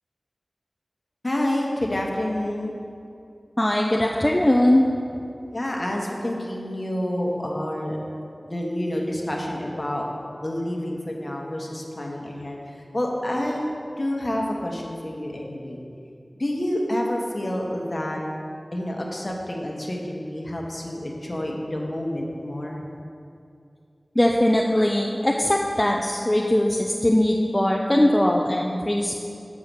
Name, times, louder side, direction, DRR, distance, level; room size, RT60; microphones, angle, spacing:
voice 1, 1.2-2.8 5.5-8.0 8.4-10.1 10.4-13.6 14.0-15.8 16.4-18.2 18.7-22.8, left 1 dB, 45° left, -1 dB, 1.3 m, -28 dB
voice 2, 3.6-4.9 24.2-29.1, left 1 dB, 25° left, 0 dB, 0.5 m, -20 dB
7.4 x 4.8 x 7.0 m, 2.5 s
wide cardioid pair, 45°, 0 cm